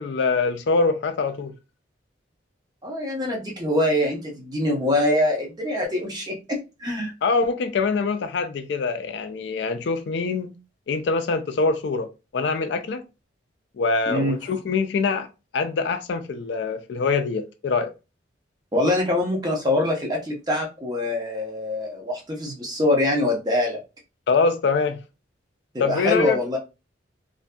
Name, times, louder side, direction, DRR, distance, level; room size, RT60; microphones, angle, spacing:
voice 1, 0.0-1.5 7.2-10.5 10.9-12.1 12.3-13.0 13.8-15.3 15.5-17.9 24.3-25.0 25.8-26.4, left 4 dB, 65° left, 0.3 m, -24 dB
voice 2, 2.8-7.1 14.1-14.4 18.7-23.8 25.7-26.6, left 1 dB, 20° right, 0.7 m, -24 dB
2.6 x 2.5 x 2.2 m
head